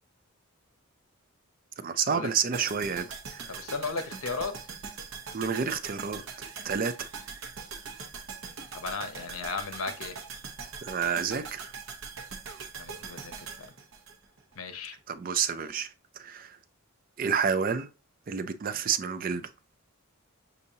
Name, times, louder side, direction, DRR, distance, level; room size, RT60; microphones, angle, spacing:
voice 1, 1.8-3.5 5.3-6.2 6.6-7.1 10.8-11.7 15.1-15.9 16.2-16.6 17.2-17.9 18.3-19.5, right 6 dB, 40° right, 0.4 m, -29 dB
sound 1, 2.5-14.7 15.0-15.1, right 5 dB, 65° right, 0.8 m, -42 dB
voice 2, 3.5-4.5 8.7-10.2 12.7-13.7 14.5-15.0, left 4 dB, 80° left, 0.8 m, -35 dB
6.8 x 2.7 x 2.7 m
head